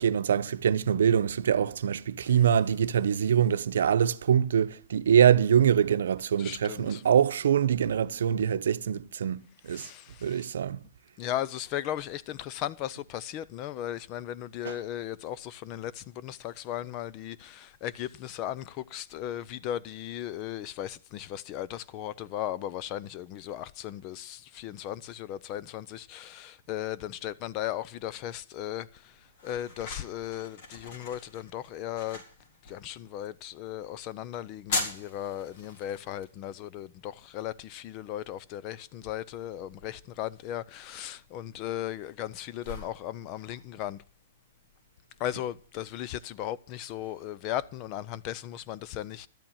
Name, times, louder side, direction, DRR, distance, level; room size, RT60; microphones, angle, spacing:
voice 1, 0.0-9.9 10.2-10.8 14.6-14.7, right 8 dB, 80° right, 0.7 m, -24 dB
voice 2, 6.4-7.0 9.7-10.5 11.2-29.2 29.4-32.2 32.7-44.0 45.2-49.3, left 12 dB, 35° left, 0.6 m, -36 dB
sound 1, 28.7-46.3, left 2 dB, 55° left, 4.1 m, -43 dB
12.0 x 8.9 x 7.2 m
hypercardioid pair, 150°, 0 cm